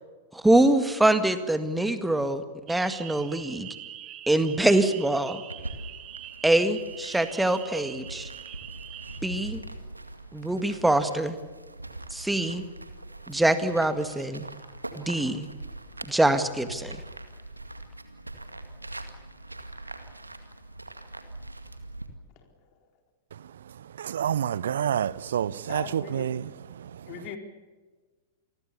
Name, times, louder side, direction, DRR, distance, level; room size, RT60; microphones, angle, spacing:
voice 1, 0.3-3.7 4.3-5.4 6.4-8.3 9.2-9.6 10.3-11.4 12.1-12.6 13.3-14.5 15.0-15.5 16.1-17.0, right 1 dB, 5° right, 1.9 m, -24 dB
sound 1, 2.7-9.2, right 11 dB, 30° right, 1.9 m, -43 dB
sound 2, 5.5-22.1, right 2 dB, 90° right, 2.1 m, -42 dB
voice 2, 24.0-26.4, right 9 dB, 65° right, 0.7 m, -28 dB
voice 3, 25.7-26.3 27.1-27.4, left 8 dB, 40° left, 4.2 m, -40 dB
28.0 x 21.0 x 7.1 m
figure-of-eight pair, 95°, 0 cm